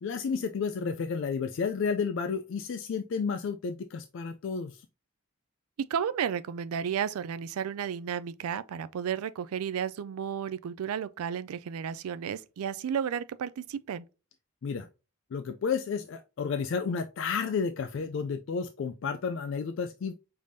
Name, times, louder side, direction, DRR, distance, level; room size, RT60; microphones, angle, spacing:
voice 1, 0.0-4.9 14.6-14.9 15.3-20.1, left 5 dB, 60° left, 0.3 m, -31 dB
voice 2, 5.9-14.0, right 8 dB, 85° right, 0.3 m, -33 dB
5.0 x 3.4 x 2.7 m
head